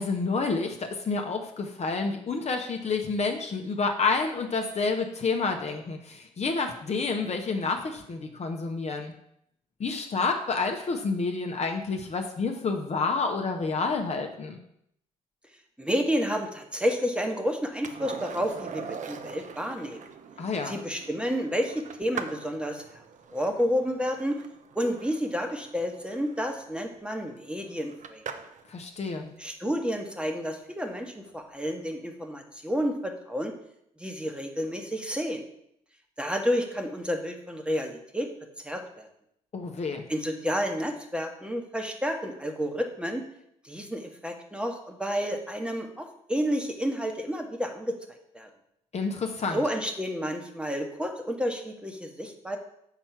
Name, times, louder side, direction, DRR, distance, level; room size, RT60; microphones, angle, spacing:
voice 1, 0.0-9.1 9.8-14.6 20.4-20.8 28.7-29.3 39.5-40.0 48.9-49.6, left 4 dB, 40° left, 3 dB, 1.0 m, -29 dB
voice 2, 15.8-20.0 20.6-22.8 23.3-24.4 24.7-28.2 29.4-33.5 34.0-35.4 36.2-38.3 38.6-39.1 40.1-43.2 43.6-48.5 49.5-52.6, equal, 5° right, 3 dB, 1.3 m, -30 dB
Skateboard, 17.8-28.7 31.3-31.4, right 6 dB, 45° right, 0.7 m, -43 dB
5.9 x 4.3 x 5.8 m, 0.73 s
hypercardioid pair, 50°, 17 cm